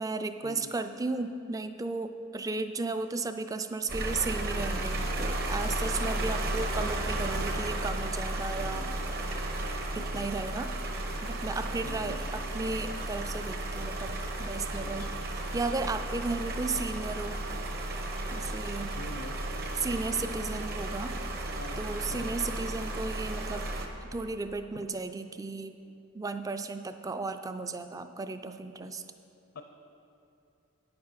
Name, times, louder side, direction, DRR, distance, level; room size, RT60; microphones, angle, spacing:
voice 1, 0.0-8.9 9.9-10.7 11.2-17.4 18.3-18.9 19.8-21.2 21.8-23.7 24.0-25.8 26.1-29.0, right 3 dB, 15° right, 9 dB, 0.3 m, -35 dB
sound 1, 3.9-23.9, right 1 dB, 45° right, 0.9 m, -34 dB
voice 2, 5.0-5.4 8.6-8.9 9.9-10.3 11.8-12.2 14.8-15.2 18.8-19.4 21.6-22.4 24.7-24.9 29.5-29.6, left 1 dB, 65° left, 6 dB, 0.5 m, -46 dB
9.4 x 8.8 x 5.6 m, 2.7 s
head